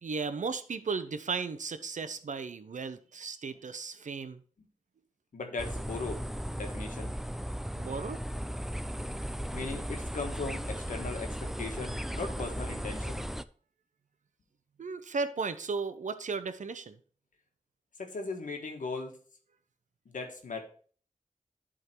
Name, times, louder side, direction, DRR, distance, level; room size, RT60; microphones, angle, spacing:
voice 1, 0.0-4.4 7.8-8.2 14.8-17.0, right 4 dB, 70° right, 12 dB, 0.7 m, -35 dB
voice 2, 5.3-6.2 6.5-7.1 9.5-13.2 18.0-19.2 20.0-20.6, left 3 dB, 90° left, 4 dB, 1.5 m, -38 dB
sound 1, 5.6-13.4, equal, 5° right, 0.4 m, -36 dB
11.0 x 3.7 x 4.5 m, 0.43 s
cardioid pair, 50°, 13 cm